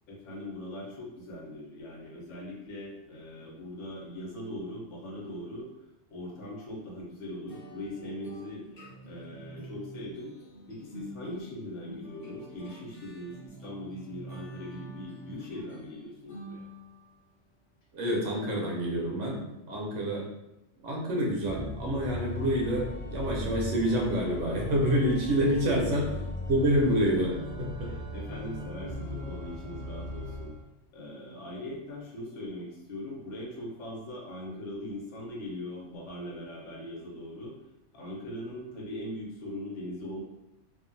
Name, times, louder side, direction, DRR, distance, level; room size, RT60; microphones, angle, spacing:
voice 1, 0.1-5.7 6.1-8.6 9.1-10.3 10.7-16.6 25.9-26.2 27.8-30.5 30.9-37.5 37.9-40.2, left 1 dB, 75° left, -3 dB, 1.1 m, -40 dB
sound 1, 7.5-17.1, right 2 dB, 45° left, 1.1 m, -47 dB
voice 2, 17.9-20.2 20.8-26.1 26.5-27.9, equal, 80° right, -1 dB, 1.1 m, -27 dB
Organ, 21.4-30.6, left 1 dB, 30° right, 0.8 m, -38 dB
2.8 x 2.3 x 2.6 m, 0.90 s
omnidirectional pair, 1.3 m